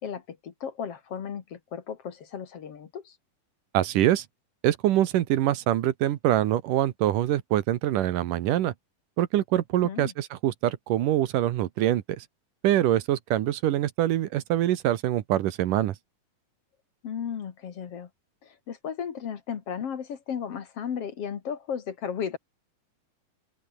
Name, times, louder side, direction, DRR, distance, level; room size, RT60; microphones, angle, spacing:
voice 1, 0.0-3.2 9.8-10.1 17.0-18.1 18.4-22.4, left 7 dB, 50° left, 2.3 m, -35 dB
voice 2, 3.7-4.3 4.6-8.7 9.2-12.3 12.6-16.0, right 13 dB, 70° right, 2.5 m, -24 dB
open air
omnidirectional pair, 4.2 m